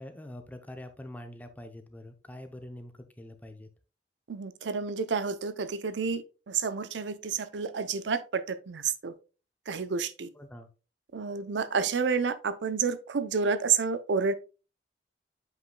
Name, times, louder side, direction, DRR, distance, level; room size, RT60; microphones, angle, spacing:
voice 1, 0.0-3.7 10.3-10.7, left 1 dB, 10° left, 0.6 m, -44 dB
voice 2, 4.3-9.1 9.7-10.3 11.1-14.3, right 5 dB, 85° right, 0.6 m, -30 dB
7.9 x 5.4 x 2.2 m
head